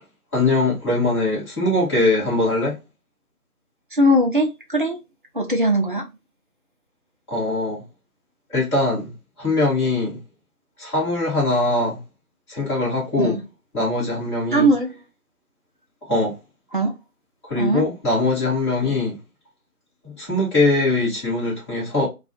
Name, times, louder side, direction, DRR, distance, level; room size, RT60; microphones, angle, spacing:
voice 1, 0.3-2.7 7.3-7.8 8.5-9.1 9.4-10.2 10.8-12.0 12.5-13.4 13.7-14.7 16.1-16.3 17.4-19.2 20.0-22.1, left 2 dB, 20° left, 1.6 m, -21 dB
voice 2, 3.9-5.0 5.3-6.1 13.2-13.4 14.5-14.9 16.7-16.9 17.6-17.8, equal, 35° right, 0.7 m, -19 dB
3.7 x 2.4 x 2.2 m
figure-of-eight pair, 160°, 45 cm